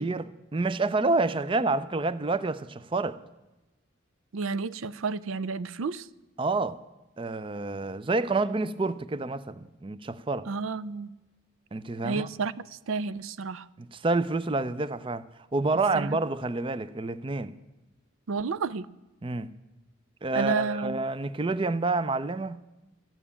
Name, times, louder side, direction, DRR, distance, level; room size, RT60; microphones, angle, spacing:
voice 1, 0.0-3.2 6.4-6.8 7.2-10.5 11.7-12.3 13.8-15.2 15.5-17.5 19.2-19.5 20.2-22.6, right 3 dB, 25° right, 0.4 m, -28 dB
voice 2, 4.3-6.1 10.5-11.1 12.0-13.7 15.9-16.2 18.3-18.9 20.3-21.0, right 4 dB, 80° right, 0.5 m, -31 dB
13.5 x 9.1 x 8.5 m
head